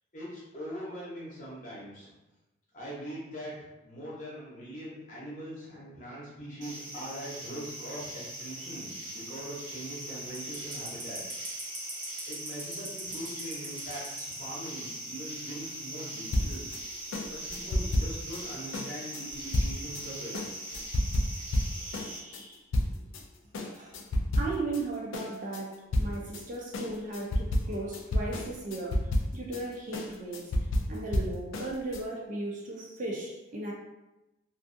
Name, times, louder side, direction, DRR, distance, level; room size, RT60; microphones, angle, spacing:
voice 1, 0.1-2.1 2.7-11.2 12.3-16.7 17.3-20.5, equal, 40° left, -6 dB, 0.8 m, -42 dB
sound 1, 6.6-22.2, right 1 dB, 60° right, 0.9 m, -40 dB
sound 2, 16.3-23.2 23.5-24.8 25.1-32.0, left 1 dB, 70° left, 0.3 m, -31 dB
voice 2, 21.7-22.6 23.6-24.0 24.3-30.5 30.9-33.7, right 2 dB, 40° right, -2 dB, 0.4 m, -37 dB
2.5 x 2.3 x 2.6 m, 0.99 s
head